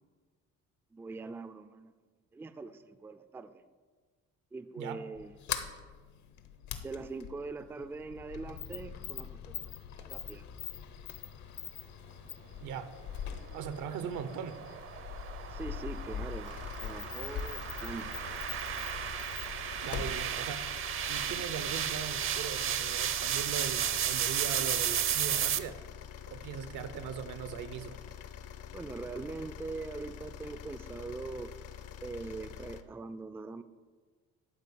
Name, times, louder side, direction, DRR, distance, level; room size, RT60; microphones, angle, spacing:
voice 1, 0.9-1.9 2.3-3.6 4.5-5.3 6.8-10.4 15.5-18.2 28.7-31.5 32.0-33.6, right 3 dB, 10° right, 11 dB, 0.3 m, -42 dB
Sliding door, 5.1-21.5, left 8 dB, 75° left, 1.1 m, -43 dB
voice 2, 12.6-13.0 13.5-14.6 19.8-20.7 21.1-25.8 26.3-28.0, right 8 dB, 85° right, 12 dB, 0.9 m, -39 dB
sound 1, 13.5-25.6, right 9 dB, 45° right, 0.6 m, -34 dB
sound 2, 16.4-32.8, left 8 dB, 55° left, 0.7 m, -46 dB
11.5 x 4.7 x 8.4 m, 1.4 s
cardioid pair, 135°, 30 cm